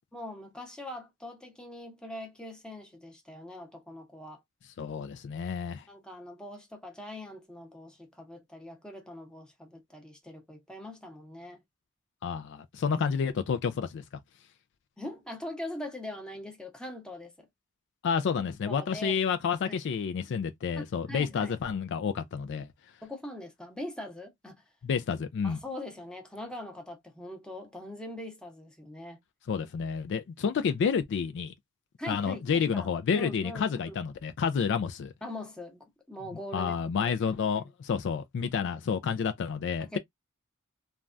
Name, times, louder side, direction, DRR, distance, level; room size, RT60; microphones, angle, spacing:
voice 1, 0.1-4.4 5.9-11.6 15.0-17.5 18.7-19.2 19.7-19.8 20.8-21.6 23.0-24.6 25.4-29.2 32.0-32.5 32.7-32.9 33.1-34.0 35.2-37.2 37.5-37.7 39.8-40.0, left 1 dB, 5° left, 0.8 m, -42 dB
voice 2, 4.8-5.8 12.2-14.0 18.0-22.7 24.8-25.6 29.5-31.5 32.1-35.1 36.5-40.0, left 6 dB, 55° left, 0.3 m, -30 dB
3.3 x 2.3 x 2.4 m
head